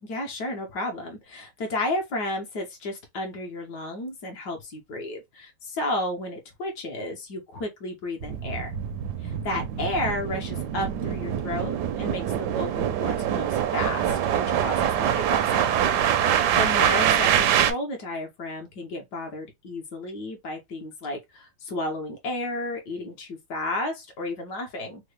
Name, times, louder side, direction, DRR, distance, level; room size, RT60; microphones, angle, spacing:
voice 1, 0.0-8.8 9.2-15.8 16.2-25.1, left 1 dB, 60° left, 1.2 m, -32 dB
sound 1, 8.2-17.7, right 9 dB, 75° right, 0.9 m, -24 dB
3.6 x 2.1 x 3.2 m
omnidirectional pair, 2.2 m